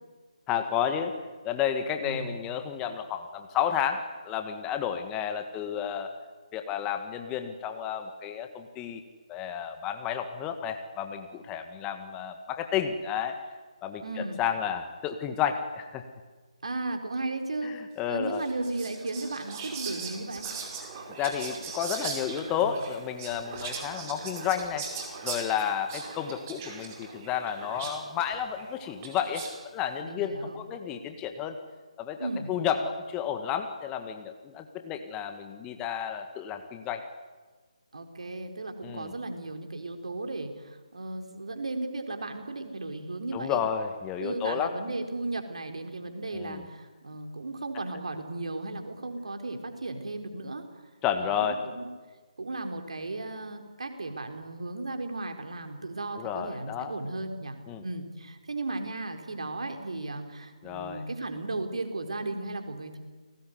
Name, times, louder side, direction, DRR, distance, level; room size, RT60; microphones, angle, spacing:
voice 1, 0.5-1.2 1.4-6.1 6.5-9.0 9.3-13.4 13.8-16.0 17.6-18.4 21.2-24.8 25.2-29.4 29.7-31.6 32.0-37.0 38.8-39.1 43.3-44.8 46.3-46.6 51.0-51.6 56.2-56.9 57.7-57.8 60.6-61.0, left 9 dB, 15° left, 7 dB, 1.8 m, -31 dB
voice 2, 2.0-2.3 14.0-14.4 16.6-17.8 18.1-20.5 30.0-30.6 32.2-32.5 37.9-43.6 44.2-50.6 51.2-51.9 52.4-63.0, right 2 dB, 60° right, 5 dB, 4.3 m, -35 dB
Whispering, 18.3-29.6, right 5 dB, 25° right, 5.2 m, -40 dB
30.0 x 19.5 x 9.6 m, 1.4 s
figure-of-eight pair, 145°, 4 cm